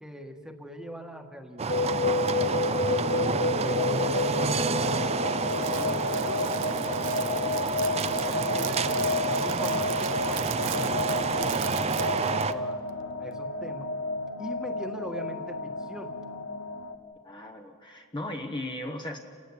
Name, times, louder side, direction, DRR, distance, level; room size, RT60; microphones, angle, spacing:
voice 1, 0.0-1.8 3.2-7.3 7.9-8.9 9.4-12.8 13.2-13.9 14.4-16.1, equal, 5° right, 4 dB, 1.6 m, -42 dB
sound 1, 1.6-12.5, right 4 dB, 30° right, 0.6 m, -29 dB
sound 2, 1.7-16.9, left 3 dB, 70° left, 1.6 m, -30 dB
Crackle, 5.4-12.5, right 11 dB, 60° right, 0.9 m, -40 dB
voice 2, 17.2-19.2, left 1 dB, 20° left, 2 dB, 1.2 m, -37 dB
29.0 x 15.5 x 9.8 m, 2.2 s
head